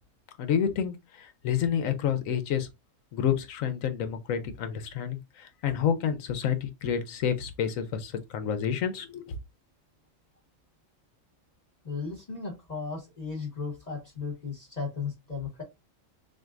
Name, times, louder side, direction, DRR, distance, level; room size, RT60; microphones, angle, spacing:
voice 1, 0.4-2.7 3.1-9.3, left 8 dB, 75° left, 1.1 m, -29 dB
voice 2, 11.8-15.6, left 5 dB, 30° left, 1.2 m, -35 dB
6.3 x 2.3 x 2.5 m
omnidirectional pair, 1.4 m